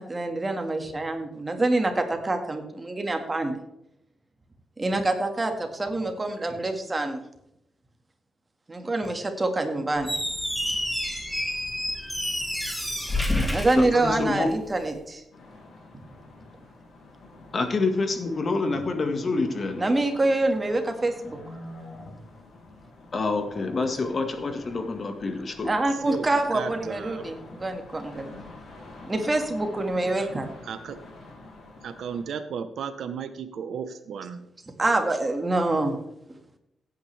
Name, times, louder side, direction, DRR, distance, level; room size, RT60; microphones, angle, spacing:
voice 1, 0.0-3.6 4.8-7.2 8.7-10.2 13.5-15.2 19.8-21.4 25.6-28.3 29.0-30.5 34.8-36.0, right 2 dB, 20° right, 5 dB, 1.9 m, -26 dB
Squeak, 10.0-14.6, left 1 dB, 5° left, 1.7 m, -29 dB
voice 2, 13.8-14.5 17.5-19.8 23.1-25.7, left 3 dB, 35° left, 6 dB, 1.7 m, -27 dB
sound 1, 15.3-32.2, left 2 dB, 65° left, 5.5 m, -46 dB
voice 3, 26.0-27.2 30.7-31.0 31.8-34.5, right 7 dB, 75° right, 10 dB, 1.0 m, -34 dB
16.5 x 9.2 x 3.4 m, 0.82 s
wide cardioid pair, 145°, 0 cm